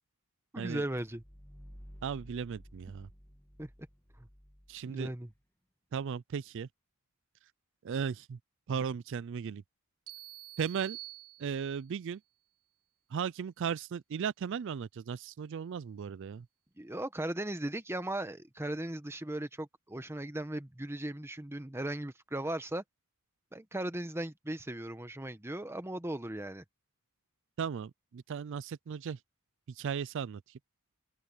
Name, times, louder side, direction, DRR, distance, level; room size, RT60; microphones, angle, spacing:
voice 1, 0.5-1.2 3.6-3.7 4.2-4.3 4.9-5.3 16.8-22.8 23.5-26.6, right 1 dB, 10° right, 1.1 m, -37 dB
sound 1, 0.9-5.4, equal, 10° left, 1.8 m, -54 dB
voice 2, 2.0-3.1 4.7-5.1 5.9-6.7 7.8-8.4 8.7-9.6 10.6-11.0 11.4-12.2 13.1-16.5 27.6-29.2 29.8-30.4, right 7 dB, 55° right, 0.4 m, -36 dB
sound 2, 10.1-11.9, right 18 dB, 75° right, 3.7 m, -48 dB
open air
head